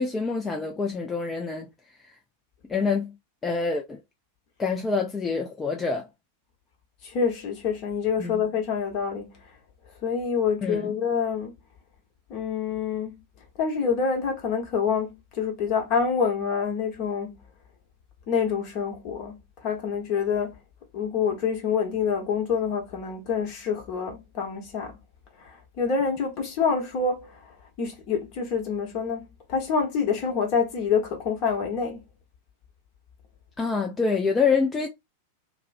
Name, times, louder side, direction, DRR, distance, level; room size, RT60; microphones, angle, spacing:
voice 1, 0.0-1.7 2.7-3.1 3.4-4.0 4.6-6.1 8.2-8.4 10.6-10.9 33.6-34.9, left 4 dB, 15° left, 0.4 m, -26 dB
voice 2, 7.0-9.4 10.0-11.6 12.3-13.2 13.6-17.4 18.3-20.6 20.9-25.0 25.4-32.0, left 6 dB, 40° left, 1.0 m, -27 dB
2.4 x 2.1 x 2.5 m
figure-of-eight pair, 90°, 0 cm